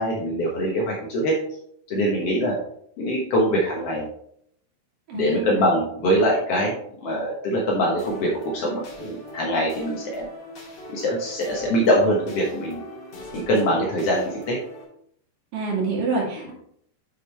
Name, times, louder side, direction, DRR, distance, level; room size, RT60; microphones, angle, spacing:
voice 1, 0.0-1.4 1.9-2.6 3.0-4.0 5.1-10.3 10.9-12.8 13.3-14.6, equal, 75° left, -2 dB, 1.4 m, -23 dB
voice 2, 5.1-5.6 15.5-16.5, right 4 dB, 60° right, -3 dB, 3.4 m, -27 dB
sound 1, 8.0-14.8, left 1 dB, 35° left, 2.0 m, -40 dB
8.0 x 6.6 x 3.3 m, 0.68 s
omnidirectional pair, 4.6 m